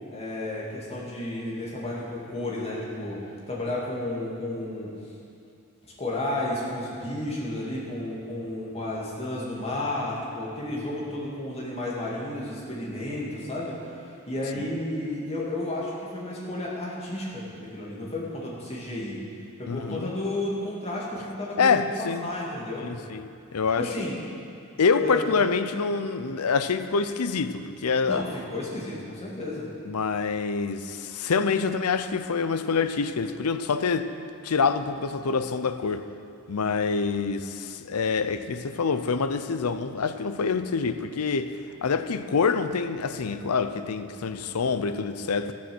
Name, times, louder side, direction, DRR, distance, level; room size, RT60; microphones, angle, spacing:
voice 1, 0.1-4.9 6.0-13.8 14.3-19.2 19.6-22.9 23.8-24.2 25.0-25.3 28.1-29.7, left 1 dB, 30° left, -5 dB, 2.3 m, -32 dB
voice 2, 19.7-20.1 21.6-22.3 22.8-23.9 24.8-28.2 29.9-34.1 34.4-36.1 36.5-45.5, left 5 dB, 80° left, 10 dB, 0.6 m, -26 dB
13.5 x 7.3 x 6.2 m, 2.5 s
head